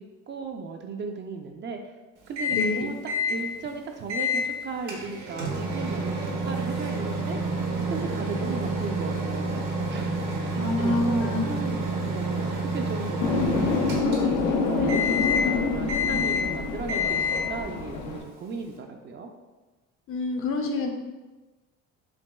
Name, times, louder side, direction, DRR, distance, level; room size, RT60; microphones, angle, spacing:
voice 1, 0.0-1.9 2.3-3.0 3.3-7.4 7.9-19.3, right 4 dB, 40° right, 4 dB, 0.4 m, -36 dB
Microwave oven, 2.4-2.8 3.1-3.4 4.1-4.4 4.9-14.5 14.9-15.5 15.9-16.5 16.9-17.5, left 1 dB, 70° right, 0.9 m, -28 dB
voice 2, 2.5-2.9 10.5-11.4 20.1-20.9, left 2 dB, 45° left, 4 dB, 0.5 m, -27 dB
sound 1, 13.2-18.2, left 4 dB, 85° left, 0.6 m, -26 dB
5.9 x 2.3 x 2.2 m, 1.2 s
cardioid pair, 95°, 30 cm